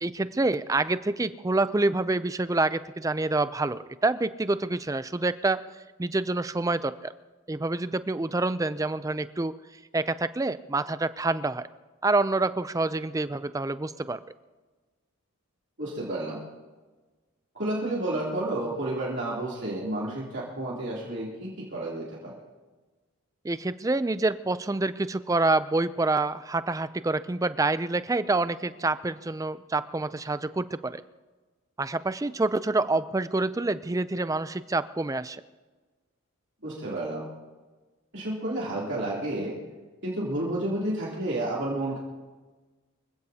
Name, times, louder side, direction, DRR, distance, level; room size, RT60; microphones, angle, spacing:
voice 1, 0.0-5.6 6.0-7.1 7.5-9.5 9.9-11.7 12.0-14.2 23.4-31.0 31.8-35.4, right 2 dB, 15° right, 14 dB, 0.4 m, -27 dB
voice 2, 15.8-16.4 17.5-22.3 36.6-37.3 38.1-39.6 40.0-42.0, right 1 dB, 55° right, -6 dB, 3.1 m, -31 dB
25.5 x 16.0 x 2.8 m, 1.3 s
head